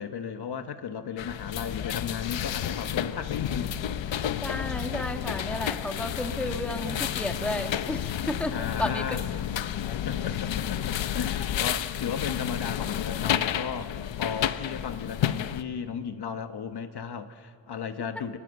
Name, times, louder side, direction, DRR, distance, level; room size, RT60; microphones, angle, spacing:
voice 1, 0.0-3.7 8.5-9.2 9.7-18.4, left 7 dB, 55° left, 8 dB, 1.2 m, -35 dB
sound 1, 1.2-15.6, left 10 dB, 75° left, 0.9 m, -31 dB
voice 2, 4.4-9.2, left 1 dB, 5° left, 5 dB, 1.4 m, -33 dB
29.5 x 22.5 x 7.9 m, 2.3 s
wide cardioid pair, 140°, 46 cm